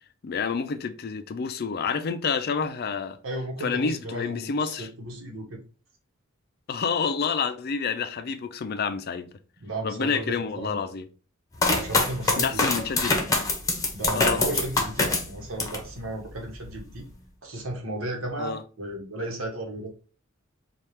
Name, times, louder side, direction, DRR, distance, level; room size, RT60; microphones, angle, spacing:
voice 1, 0.2-3.2 3.6-4.9 6.7-9.3 9.8-11.1 12.4-13.2 14.1-14.4 18.4-18.6, left 5 dB, 50° left, 0.4 m, -28 dB
voice 2, 3.2-5.6 9.6-10.8 11.8-13.2 13.9-17.1 17.4-19.9, right 1 dB, 75° right, 1.1 m, -34 dB
sound 1, 11.6-15.9 16.3-17.0, left 3 dB, 15° left, 0.8 m, -25 dB
4.3 x 2.4 x 3.2 m
head